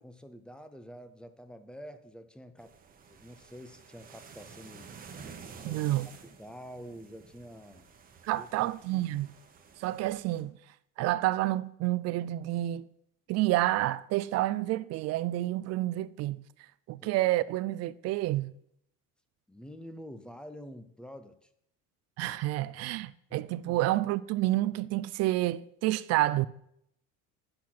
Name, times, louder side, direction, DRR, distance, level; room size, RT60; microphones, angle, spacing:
voice 1, 0.0-2.8 3.1-4.9 5.6-5.8 6.2-7.9 8.4-9.1 17.0-17.2 19.5-21.5 23.3-23.8, equal, 5° left, 0.5 m, -48 dB
sound 1, 2.6-10.4, right 5 dB, 25° right, 1.1 m, -51 dB
voice 2, 5.6-6.1 8.2-9.3 9.8-10.5 11.0-12.9 13.3-16.4 16.9-18.5 22.2-26.5, right 16 dB, 50° right, 0.4 m, -29 dB
8.5 x 5.7 x 6.0 m
cardioid pair, 150°, 33 cm